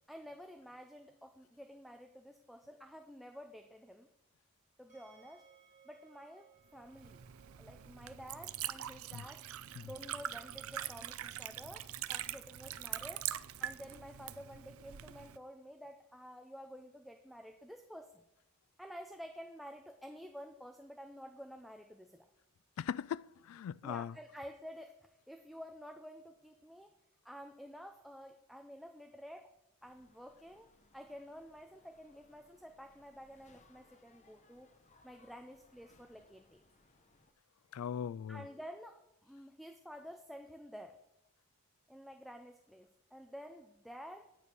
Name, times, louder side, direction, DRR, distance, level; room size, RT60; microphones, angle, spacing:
voice 1, 0.1-4.1 4.8-5.4 5.8-7.2 7.6-9.4 9.8-13.2 13.6-18.2 18.8-22.3 23.8-26.9 27.2-29.5 29.8-30.7 30.9-34.7 35.0-36.6 38.3-41.0 41.9-44.2, equal, ahead, 0.6 m, -51 dB
sound 1, 4.9-17.9, right 8 dB, 40° right, 2.8 m, -70 dB
Liquid, 6.8-15.4, right 12 dB, 75° right, 0.5 m, -43 dB
voice 2, 22.8-24.1 37.7-38.4, left 8 dB, 80° left, 0.3 m, -39 dB
sound 2, 29.8-37.3, left 3 dB, 35° left, 0.9 m, -68 dB
9.7 x 8.4 x 6.1 m
head